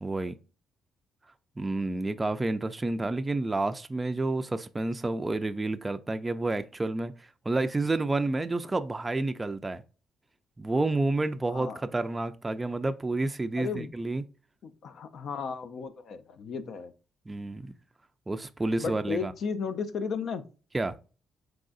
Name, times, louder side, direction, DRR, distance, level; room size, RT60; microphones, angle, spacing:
voice 1, 0.0-0.4 1.6-7.1 7.5-9.8 10.6-14.2 17.3-17.7 18.3-19.3 20.7-20.9, right 2 dB, 20° right, 0.4 m, -29 dB
voice 2, 11.5-11.8 13.6-13.9 14.6-16.9 18.8-20.5, left 5 dB, 65° left, 0.5 m, -34 dB
4.6 x 3.8 x 2.4 m
cardioid pair, 90°, 0 cm